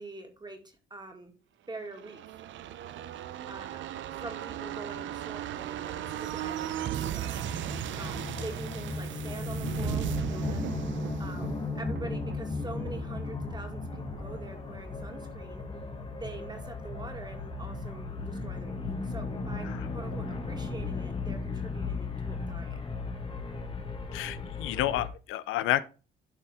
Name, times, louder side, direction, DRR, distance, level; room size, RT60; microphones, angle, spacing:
voice 1, 0.0-1.3 1.7-2.4 3.5-3.9 4.1-7.4 7.9-10.6 11.2-15.6 16.1-22.8, right 2 dB, 20° right, 2.3 m, -44 dB
sound 1, 1.8-15.3 15.6-15.7, right 11 dB, 70° right, 0.6 m, -37 dB
sound 2, 5.9-25.1, left 3 dB, 25° left, 1.5 m, -36 dB
voice 2, 24.1-25.8, left 14 dB, 90° left, 0.5 m, -29 dB
12.0 x 4.3 x 3.6 m
cardioid pair, 90°, 20 cm